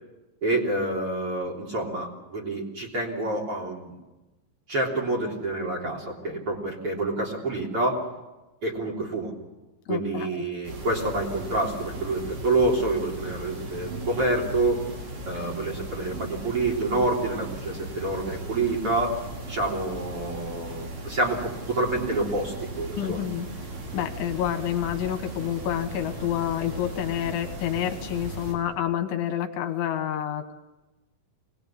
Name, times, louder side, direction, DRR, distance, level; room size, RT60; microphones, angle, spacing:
voice 1, 0.4-3.9 4.7-8.0 8.6-9.3 9.9-14.8 15.3-19.1 19.5-23.2, right 2 dB, 30° right, -1 dB, 3.6 m, -27 dB
voice 2, 9.9-10.4 23.0-23.5 23.9-30.5, left 10 dB, 75° left, 7 dB, 3.6 m, -28 dB
sound 1, 10.6-28.5, right 1 dB, 70° right, 7.3 m, -37 dB
25.0 x 20.0 x 8.5 m, 1.1 s
omnidirectional pair, 5.5 m